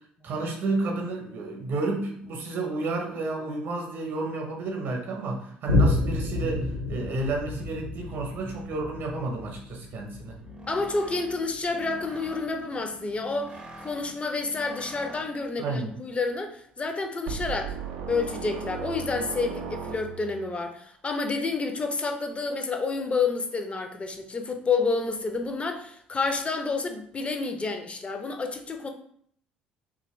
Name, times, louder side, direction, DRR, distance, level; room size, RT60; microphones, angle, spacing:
voice 1, 0.2-10.4 15.6-15.9, right 3 dB, 50° right, 2 dB, 0.8 m, -31 dB
Boom, 5.7-12.6 13.1-13.2, left 2 dB, 90° left, 0.7 m, -30 dB
sound 1, 10.3-15.6, right 2 dB, 20° right, 0.6 m, -46 dB
voice 2, 10.7-17.8 18.1-28.9, left 4 dB, 25° left, 5 dB, 0.5 m, -29 dB
sound 2, 17.3-20.5, right 6 dB, 65° right, 0.4 m, -36 dB
2.8 x 2.6 x 3.0 m, 0.64 s
figure-of-eight pair, 55°, 5 cm